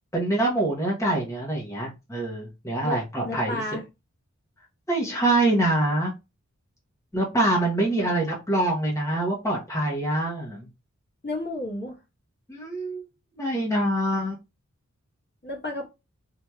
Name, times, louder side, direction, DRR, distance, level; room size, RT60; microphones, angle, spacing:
voice 1, 0.1-3.6 4.9-6.1 7.1-10.7 12.5-13.0 13.3-14.4, right 1 dB, 10° left, -3 dB, 0.9 m, -25 dB
voice 2, 2.8-3.8 8.0-8.1 11.2-12.0 15.4-15.9, left 1 dB, 35° left, -1 dB, 1.1 m, -32 dB
3.1 x 2.8 x 2.3 m, 0.26 s
wide cardioid pair, 55°, 29 cm